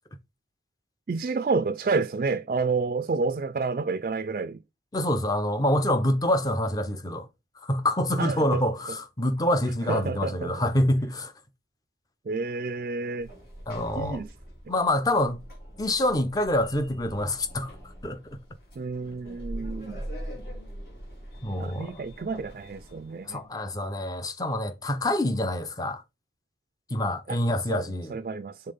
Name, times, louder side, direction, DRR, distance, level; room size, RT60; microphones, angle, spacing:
voice 1, 1.1-4.6 8.2-9.0 9.9-10.5 12.3-13.3 14.0-14.3 18.8-20.0 21.6-23.4 27.3-27.4 27.7-28.7, right 4 dB, 50° right, 0.4 m, -30 dB
voice 2, 4.9-7.3 7.6-11.3 13.7-14.2 14.7-15.4 15.8-17.7 18.0-18.2 21.4-21.9 23.2-26.0 26.9-28.1, left 1 dB, 20° left, 0.6 m, -26 dB
Sliding door, 13.2-23.3, equal, 55° left, 3.1 m, -42 dB
5.6 x 3.7 x 5.2 m
head